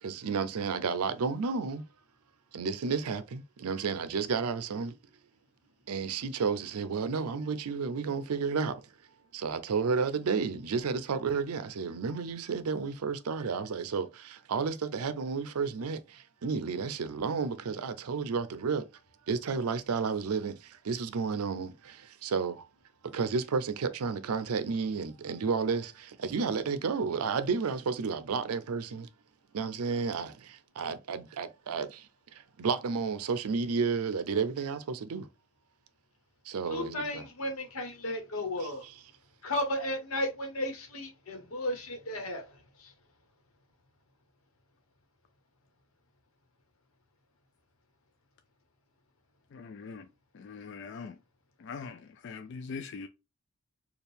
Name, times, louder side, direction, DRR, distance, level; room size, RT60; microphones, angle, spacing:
voice 1, 0.0-1.8 2.5-4.9 5.9-8.8 9.3-18.9 19.3-22.7 23.0-29.1 29.5-35.3 36.5-37.2 38.6-38.9, right 5 dB, 85° right, 0.5 m, -32 dB
voice 2, 36.7-38.8 39.4-42.5 42.8-42.9, left 1 dB, 75° left, 1.1 m, -34 dB
voice 3, 49.5-50.1 50.3-51.2 51.6-53.1, left 5 dB, 55° left, 0.3 m, -42 dB
4.3 x 2.4 x 3.4 m
head